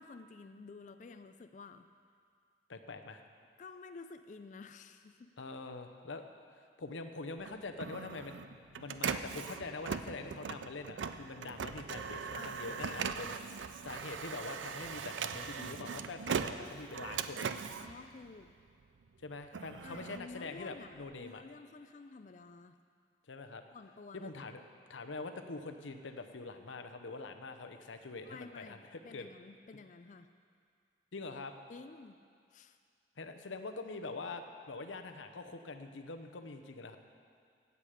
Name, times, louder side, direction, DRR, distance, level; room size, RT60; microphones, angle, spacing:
voice 1, 0.0-1.9 3.6-5.3 12.3-13.5 17.8-18.5 19.8-22.8 23.7-24.3 28.2-30.3 31.7-32.2 32.5-32.8, left 4 dB, 40° left, 9 dB, 0.3 m, -51 dB
voice 2, 2.7-3.2 5.4-6.3 6.5-17.5 19.2-21.4 23.3-23.6 24.1-24.6 24.9-29.3 31.1-31.5 33.2-37.0, left 3 dB, 85° left, 7 dB, 0.8 m, -44 dB
Printer, 7.4-18.8 19.3-21.1, right 6 dB, 75° right, 0.5 m, -40 dB
16.0 x 8.3 x 5.0 m, 2.2 s
head